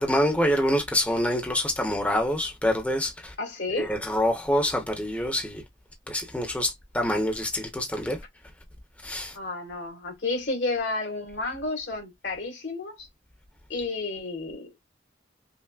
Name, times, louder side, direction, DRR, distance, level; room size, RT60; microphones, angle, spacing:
voice 1, 0.0-3.3 3.8-5.6 6.1-8.2 9.0-9.4, equal, 10° left, 0.7 m, -26 dB
voice 2, 3.4-3.9 9.3-13.1 13.7-14.8, left 3 dB, 80° left, 2.3 m, -31 dB
5.5 x 2.0 x 2.3 m
head